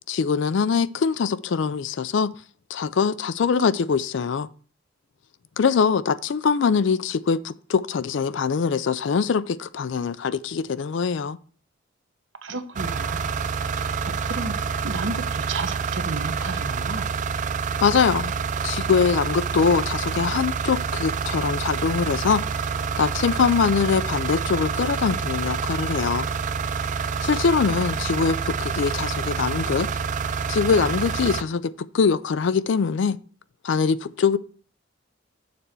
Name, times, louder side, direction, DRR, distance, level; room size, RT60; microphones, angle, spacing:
voice 1, 0.1-2.3 2.7-4.5 5.6-11.4 17.8-18.3 18.6-22.4 23.0-26.3 27.2-29.9 30.5-33.2 33.6-34.4, left 5 dB, 60° left, 0.4 m, -23 dB
voice 2, 12.4-13.4 14.2-14.5 14.8-17.1, right 3 dB, 65° right, 0.9 m, -32 dB
sound 1, 12.8-31.4, right 6 dB, 40° right, 0.3 m, -27 dB
6.8 x 4.3 x 6.7 m
head